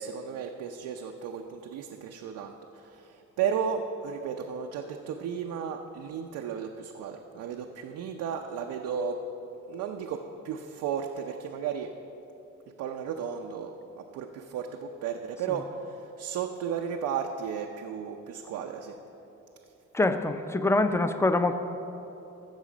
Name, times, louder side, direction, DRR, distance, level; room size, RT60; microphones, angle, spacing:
voice 1, 0.0-9.2 9.7-11.9 12.8-19.0, right 7 dB, 85° right, 3 dB, 0.6 m, -34 dB
voice 2, 19.9-21.6, left 2 dB, 10° left, 9 dB, 0.6 m, -24 dB
15.5 x 5.7 x 5.1 m, 2.9 s
cardioid pair, 90°, 30 cm